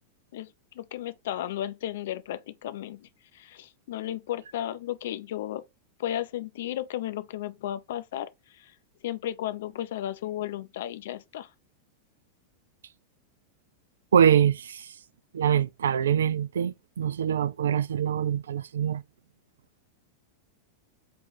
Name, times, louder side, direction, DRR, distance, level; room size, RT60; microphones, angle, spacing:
voice 1, 0.7-5.6 6.0-8.7 9.0-11.5 16.3-16.4, left 12 dB, 55° left, 0.5 m, -34 dB
voice 2, 14.1-14.9 15.3-19.0, right 8 dB, 65° right, 0.3 m, -24 dB
5.0 x 2.5 x 3.8 m
figure-of-eight pair, 90°, 0 cm